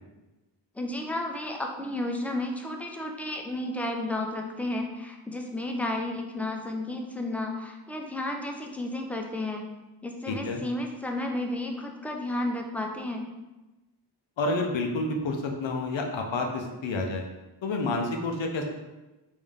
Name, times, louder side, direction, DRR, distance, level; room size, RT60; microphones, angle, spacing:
voice 1, 0.8-9.6 10.0-13.3, left 1 dB, 5° left, 2 dB, 0.4 m, -32 dB
voice 2, 10.3-10.6 14.4-17.2 17.6-18.6, left 2 dB, 85° left, 2 dB, 0.7 m, -29 dB
3.6 x 2.6 x 3.5 m, 1.1 s
wide cardioid pair, 60°, 45 cm